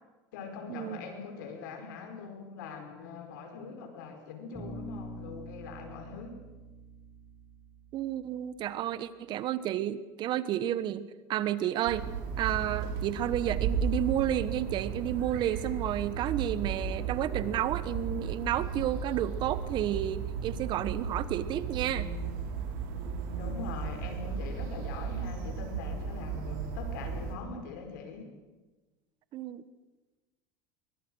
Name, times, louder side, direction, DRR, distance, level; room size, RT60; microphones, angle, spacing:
voice 1, 0.3-6.4 23.4-28.3, left 5 dB, 85° left, 4 dB, 5.0 m, -42 dB
Bass guitar, 4.5-8.6, right 1 dB, ahead, 7.3 m, -46 dB
voice 2, 7.9-12.1 12.4-22.1 29.3-29.6, right 11 dB, 50° right, 15 dB, 1.3 m, -31 dB
sound 1, 11.9-27.4, right 6 dB, 70° right, 4.3 m, -35 dB
23.5 x 21.5 x 6.4 m, 1.2 s
supercardioid pair, 115°, 10 cm